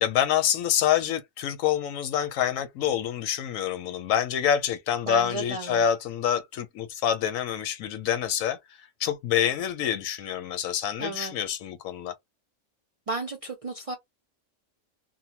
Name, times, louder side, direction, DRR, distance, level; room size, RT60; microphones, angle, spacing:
voice 1, 0.0-8.6 9.0-12.1, left 9 dB, 85° left, 1.0 m, -26 dB
voice 2, 5.0-5.8 11.0-11.3 13.1-13.9, right 2 dB, 50° right, 0.4 m, -33 dB
2.8 x 2.2 x 2.8 m
omnidirectional pair, 1.4 m